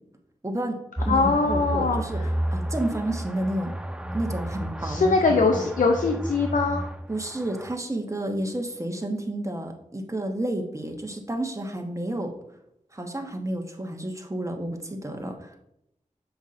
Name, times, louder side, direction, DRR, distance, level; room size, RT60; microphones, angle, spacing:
voice 1, 0.4-0.8 1.0-2.2 2.5-3.7 4.1-5.1 5.5-5.7 7.1-12.3 12.9-15.5, right 1 dB, 20° right, 3 dB, 1.2 m, -30 dB
sound 1, 1.0-7.7, right 1 dB, 5° right, 0.5 m, -31 dB
voice 2, 1.1-2.0 4.8-6.8, left 4 dB, 75° left, 4 dB, 0.6 m, -22 dB
7.0 x 5.5 x 2.6 m, 0.80 s
cardioid pair, 45°, 14 cm